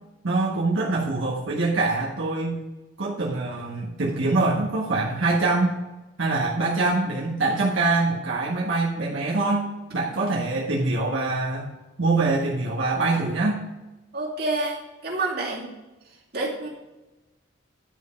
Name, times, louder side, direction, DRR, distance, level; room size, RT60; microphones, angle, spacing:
voice 1, 0.2-2.6 3.0-5.8 6.2-11.7 12.0-13.6, right 3 dB, 80° right, -4 dB, 1.5 m, -24 dB
voice 2, 14.1-15.7 16.3-16.7, right 2 dB, 50° right, -4 dB, 2.4 m, -28 dB
11.0 x 5.4 x 5.2 m, 1.1 s
head